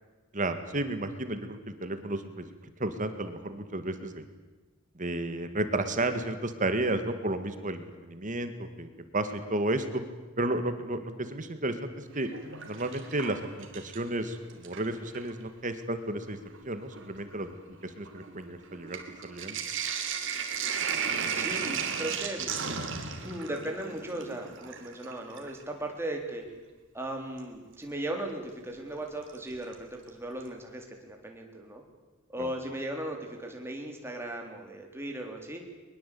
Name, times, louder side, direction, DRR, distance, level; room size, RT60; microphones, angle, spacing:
voice 1, 0.3-2.5 2.8-4.3 5.0-10.0 10.4-12.3 12.7-16.4 16.6-17.6 17.8-19.6 32.4-32.5, right 2 dB, 40° right, 9 dB, 2.0 m, -32 dB
Sink (filling or washing), 12.1-14.2 14.5-15.3 16.1-16.2 16.5-25.6 27.4-27.5 29.3-29.7 30.1-30.2 30.4-30.5, right 6 dB, 65° right, 3.1 m, -35 dB
voice 2, 21.3-22.5 23.2-26.4 26.9-31.8 32.3-35.6, right 1 dB, 10° right, 2 dB, 3.7 m, -37 dB
22.0 x 22.0 x 8.6 m, 1.2 s
head